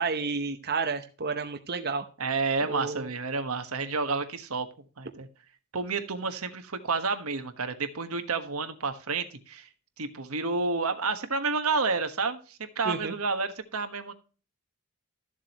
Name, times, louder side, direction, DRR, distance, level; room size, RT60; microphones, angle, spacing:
voice 1, 0.0-2.0 2.6-3.1 12.8-13.1, right 4 dB, 45° right, 6 dB, 0.8 m, -31 dB
voice 2, 2.2-4.7 5.0-5.3 5.7-9.7 10.0-14.1, right 4 dB, 85° right, 8 dB, 1.4 m, -30 dB
13.5 x 7.5 x 3.0 m, 0.36 s
head